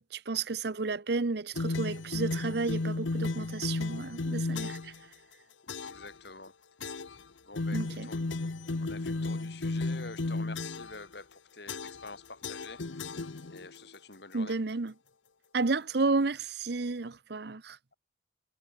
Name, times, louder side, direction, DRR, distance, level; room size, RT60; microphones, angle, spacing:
voice 1, 0.0-4.9 7.7-8.1 14.3-14.9 15.5-17.8, right 3 dB, 60° right, 0.8 m, -32 dB
sound 1, 1.6-5.0 5.7-6.1 6.8-7.2 7.6-11.0 11.7-12.1 12.4-13.8, left 3 dB, 90° left, 0.9 m, -34 dB
voice 2, 5.8-6.5 7.5-8.3 8.8-13.2 13.5-14.6, left 3 dB, 60° left, 4.1 m, -47 dB
head